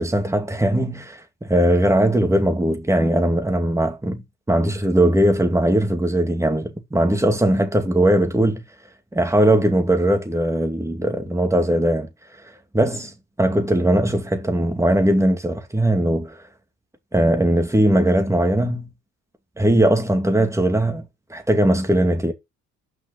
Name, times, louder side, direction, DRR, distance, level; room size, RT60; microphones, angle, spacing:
voice 1, 0.0-8.6 9.1-12.1 12.7-16.4 17.1-18.9 19.6-22.3, right 1 dB, 10° right, 2.4 m, -19 dB
6.0 x 6.0 x 6.4 m
cardioid pair, 90°, 30 cm